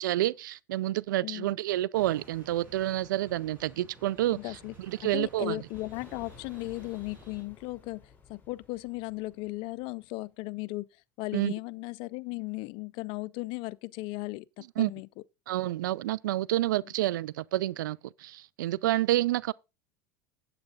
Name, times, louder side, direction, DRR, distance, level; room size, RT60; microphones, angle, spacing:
voice 1, 0.0-5.6 11.3-11.5 14.8-14.9 15.5-19.5, right 15 dB, 75° right, 0.4 m, -29 dB
sound 1, 1.9-7.4, right 3 dB, 20° right, 5.9 m, -53 dB
voice 2, 4.3-4.7 5.0-8.0 8.3-10.9 11.2-15.1, left 21 dB, 55° left, 0.5 m, -36 dB
sound 2, 5.7-10.4, left 5 dB, 15° left, 3.9 m, -55 dB
8.7 x 8.2 x 3.8 m
hypercardioid pair, 90°, 10 cm